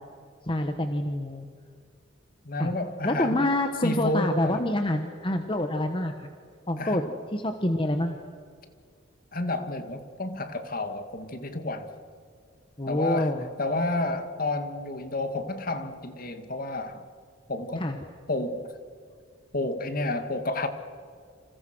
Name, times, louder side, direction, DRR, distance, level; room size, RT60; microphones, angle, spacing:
voice 1, 0.5-1.5 2.6-2.7 3.0-6.3 6.7-7.0 7.3-8.2 12.8-13.5 17.8-18.0, left 1 dB, 25° left, 6 dB, 1.3 m, -27 dB
voice 2, 2.4-3.5 3.8-4.7 6.8-7.1 9.3-11.9 12.9-13.3 13.6-17.0 17.5-17.9 18.3-18.7 19.5-20.7, left 2 dB, 45° left, 8 dB, 2.2 m, -30 dB
29.0 x 28.0 x 6.3 m, 2.1 s
head